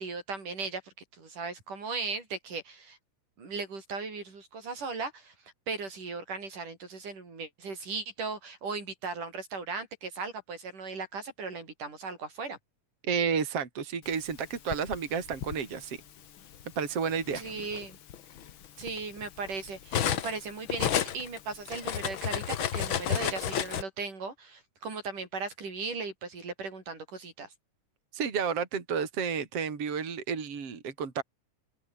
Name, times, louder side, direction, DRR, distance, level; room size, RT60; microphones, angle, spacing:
voice 1, 0.0-3.0 3.4-5.3 5.7-12.6 17.3-18.0 18.8-20.9 21.1-27.5, right 4 dB, 85° right, 8.0 m, -37 dB
voice 2, 13.0-16.0 16.8-17.4 28.1-31.2, right 6 dB, 50° right, 4.1 m, -31 dB
Cutlery silverware, 14.3-15.6 16.5-16.7 17.1-20.4 20.7-23.8, left 9 dB, 55° left, 1.7 m, -32 dB
omnidirectional pair, 3.6 m